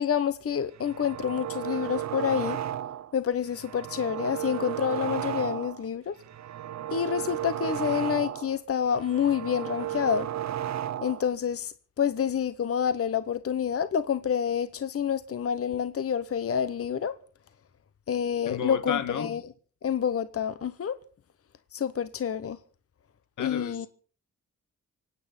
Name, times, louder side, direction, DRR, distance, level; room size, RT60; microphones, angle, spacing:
voice 1, 0.0-2.6 3.1-6.1 6.9-10.3 11.0-17.1 18.1-19.4 19.8-20.9 21.7-22.6 23.4-23.9, left 8 dB, 50° left, 0.9 m, -28 dB
sound 1, 0.8-3.1 3.5-5.9 6.2-8.6 8.9-11.3, right 11 dB, 70° right, 0.7 m, -34 dB
voice 2, 18.4-19.4 23.4-23.8, left 8 dB, 85° left, 1.7 m, -32 dB
25.0 x 9.2 x 5.5 m
cardioid pair, 75°, 29 cm